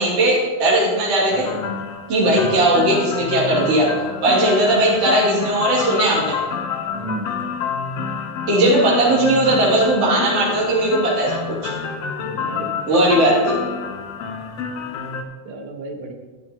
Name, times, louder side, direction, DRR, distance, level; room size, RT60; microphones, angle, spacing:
voice 1, 0.0-1.5 2.1-3.9 4.2-6.4 8.5-11.7 12.9-13.6, right 1 dB, 45° right, -7 dB, 3.8 m, -18 dB
sound 1, 1.3-15.2, left 6 dB, 65° left, 1.6 m, -28 dB
voice 2, 6.9-7.3 12.2-12.7 15.5-16.1, right 2 dB, 85° right, 3 dB, 0.9 m, -31 dB
13.0 x 9.9 x 4.5 m, 1.3 s
omnidirectional pair, 4.0 m